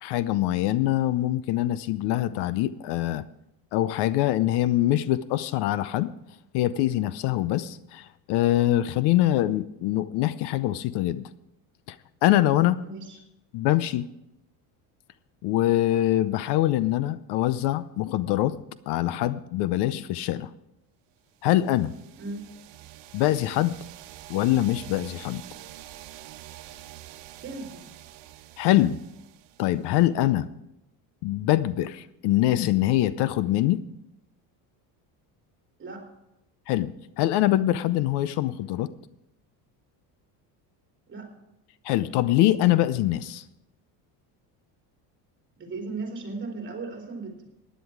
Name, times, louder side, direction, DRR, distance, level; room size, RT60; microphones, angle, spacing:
voice 1, 0.0-3.2 3.7-6.1 6.5-11.3 11.9-12.0 12.2-12.8 13.5-14.1 15.4-18.6 18.9-20.5 21.4-21.9 23.1-23.8 24.3-25.4 28.6-29.0 29.6-30.5 31.2-33.8 36.7-36.9 37.2-38.9 41.8-43.4, left 14 dB, 65° left, 16 dB, 0.7 m, -24 dB
voice 2, 12.8-13.2 22.2-22.5 27.4-27.8 35.8-36.1 41.1-41.4 45.6-47.5, right 3 dB, 25° right, 2 dB, 3.3 m, -36 dB
sound 1, 21.4-30.1, right 14 dB, 75° right, 1.2 m, -46 dB
15.5 x 10.5 x 4.7 m, 0.88 s
cardioid pair, 145°, 43 cm